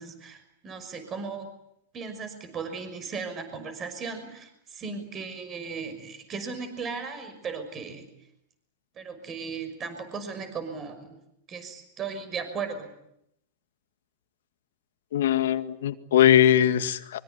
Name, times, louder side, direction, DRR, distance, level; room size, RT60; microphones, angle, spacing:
voice 1, 0.0-1.5 1.9-8.1 8.9-11.2 11.5-12.9, right 5 dB, 25° right, 9 dB, 6.0 m, -36 dB
voice 2, 15.1-17.2, left 11 dB, 80° left, 10 dB, 2.0 m, -21 dB
24.5 x 24.0 x 9.6 m, 0.78 s
supercardioid pair, 140°, 0 cm